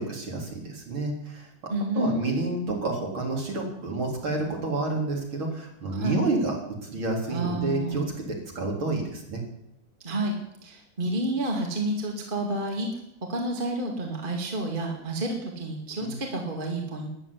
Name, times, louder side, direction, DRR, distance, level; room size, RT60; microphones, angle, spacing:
voice 1, 0.0-6.6 6.8-9.4 16.0-16.1, right 2 dB, 45° right, 0 dB, 4.4 m, -29 dB
voice 2, 1.7-2.5 5.9-6.2 7.3-8.0 10.0-10.3 10.6-12.9 13.3-17.1, right 1 dB, 20° right, 0 dB, 2.2 m, -30 dB
13.5 x 10.5 x 10.0 m, 0.82 s
omnidirectional pair, 3.3 m